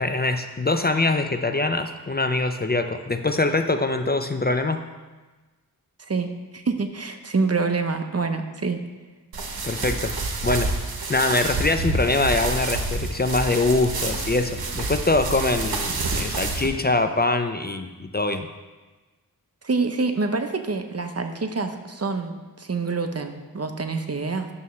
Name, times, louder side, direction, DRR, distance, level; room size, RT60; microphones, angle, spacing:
voice 1, 0.0-4.8 9.6-10.2 10.4-10.7 11.1-18.5, left 2 dB, 25° left, 7 dB, 0.5 m, -23 dB
voice 2, 6.0-8.8 19.6-24.5, right 4 dB, 40° right, 6 dB, 0.8 m, -26 dB
sound 1, 9.3-16.7, right 3 dB, 80° right, 1.1 m, -28 dB
11.0 x 6.9 x 3.2 m, 1.2 s
cardioid pair, 45°, 36 cm